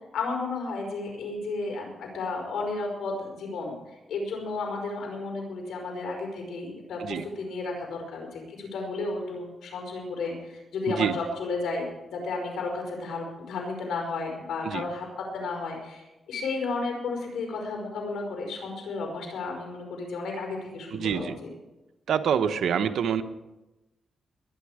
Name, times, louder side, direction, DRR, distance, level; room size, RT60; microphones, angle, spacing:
voice 1, 0.1-15.1 15.3-21.5, left 3 dB, 85° left, 1 dB, 5.0 m, -33 dB
voice 2, 10.9-11.2 14.6-14.8 20.9-21.4 22.1-23.2, right 8 dB, 80° right, 9 dB, 1.0 m, -26 dB
22.0 x 9.7 x 5.0 m, 1.0 s
cardioid pair, 85°, 0 cm